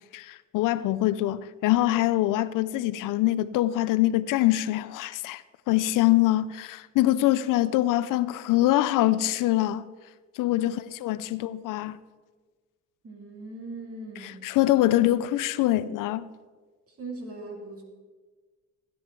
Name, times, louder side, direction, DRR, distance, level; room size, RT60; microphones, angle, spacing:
voice 1, 0.1-9.9 10.4-12.0 14.2-16.3, left 15 dB, 90° left, 0.5 m, -24 dB
voice 2, 13.0-14.4 16.9-17.8, right 2 dB, 45° right, 2.6 m, -40 dB
16.5 x 9.5 x 4.6 m
cardioid pair, 90°, 31 cm